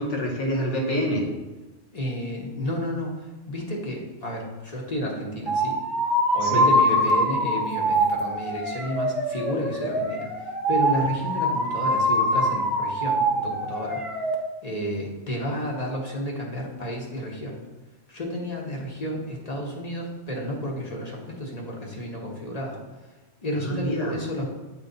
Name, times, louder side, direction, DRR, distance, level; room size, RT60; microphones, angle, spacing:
voice 1, 0.0-1.3 6.4-6.7 23.6-24.2, equal, 70° left, 1 dB, 1.4 m, -26 dB
voice 2, 1.9-5.8 6.3-14.0 14.6-17.6 18.1-22.8 23.4-24.5, equal, 35° left, -2 dB, 1.0 m, -31 dB
sound 1, 5.5-14.3, equal, ahead, 0.7 m, -24 dB
8.5 x 3.1 x 3.9 m, 1.1 s
omnidirectional pair, 1.3 m